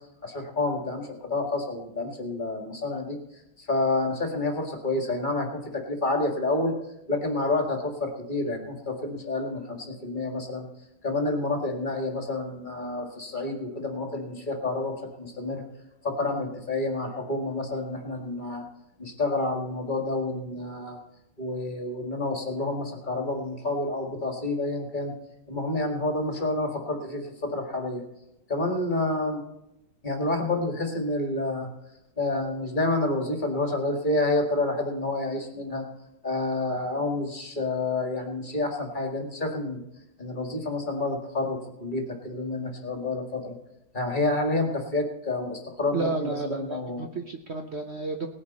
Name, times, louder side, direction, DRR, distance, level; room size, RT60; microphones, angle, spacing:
voice 1, 0.2-3.2 3.6-6.7 7.1-10.7 11.0-15.6 16.0-18.6 19.0-21.0 21.4-25.1 25.5-28.0 28.5-29.4 30.0-31.7 32.2-35.8 36.2-39.8 40.2-43.6 43.9-47.0, left 2 dB, 25° left, 2 dB, 1.8 m, -29 dB
voice 2, 45.9-48.3, right 4 dB, 85° right, 4 dB, 0.5 m, -31 dB
18.5 x 10.0 x 4.2 m, 0.86 s
omnidirectional pair, 2.3 m